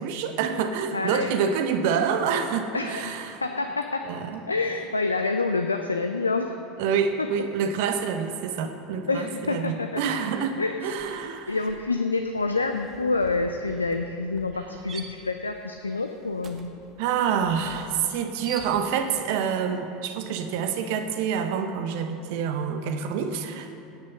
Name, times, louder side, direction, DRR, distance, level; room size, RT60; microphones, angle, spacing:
voice 1, 0.0-3.4 4.0-4.4 6.8-11.6 17.0-23.7, right 7 dB, 60° right, 7 dB, 1.2 m, -27 dB
voice 2, 0.9-1.3 2.7-3.1 3.4-4.1 4.5-6.5 9.1-10.0 10.6-10.8 11.5-16.7, left 3 dB, 85° left, 6 dB, 0.6 m, -27 dB
sound 1, 10.2-10.5 10.8-19.2, right 4 dB, 30° right, 1.6 m, -46 dB
17.0 x 10.0 x 5.6 m, 2.8 s
figure-of-eight pair, 75°, 0 cm